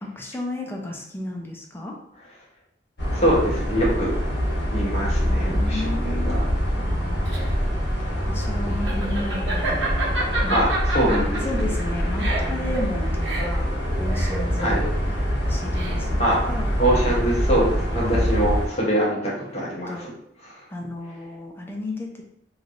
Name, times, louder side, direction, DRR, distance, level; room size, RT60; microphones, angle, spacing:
voice 1, 0.0-1.9 5.3-6.4 6.8-7.5 8.3-10.6 11.0-13.7 14.0-14.8 15.5-16.2 16.5-16.7 18.0-18.2 19.9-20.1 20.7-22.2, left 2 dB, 15° left, 0 dB, 0.4 m, -33 dB
sound 1, 3.0-18.7, equal, 65° left, 1.1 m, -25 dB
voice 2, 3.2-4.2 4.7-6.4 10.5-11.7 14.6-14.8 16.2-16.4 16.8-20.1 20.4-20.6, right 1 dB, 35° left, -5 dB, 0.9 m, -24 dB
Laughter, 6.9-16.3, right 2 dB, 80° right, 0.9 m, -30 dB
3.1 x 2.6 x 2.4 m, 0.77 s
head